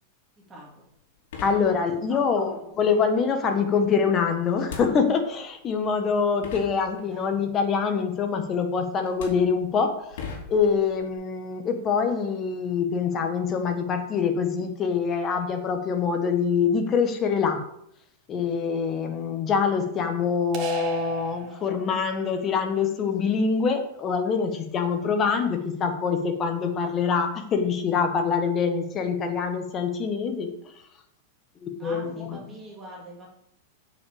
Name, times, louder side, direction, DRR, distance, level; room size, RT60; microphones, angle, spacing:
voice 1, 0.5-0.8 2.1-2.9 7.1-7.3 31.8-33.3, right 1 dB, 15° right, -2 dB, 2.4 m, -44 dB
sound 1, 0.9-1.0 1.3-2.2 4.6-5.4 6.1-6.2 6.4-7.4 8.4-8.7 9.0-11.1, left 5 dB, 70° left, 3.0 m, -40 dB
voice 2, 1.4-10.1 10.5-17.6 18.3-30.5 31.6-32.4, left 6 dB, 25° left, 6 dB, 1.5 m, -25 dB
sound 2, 20.5-22.2, right 6 dB, 35° right, 1.9 m, -35 dB
7.8 x 5.8 x 7.2 m, 0.73 s
supercardioid pair, 150°, 0 cm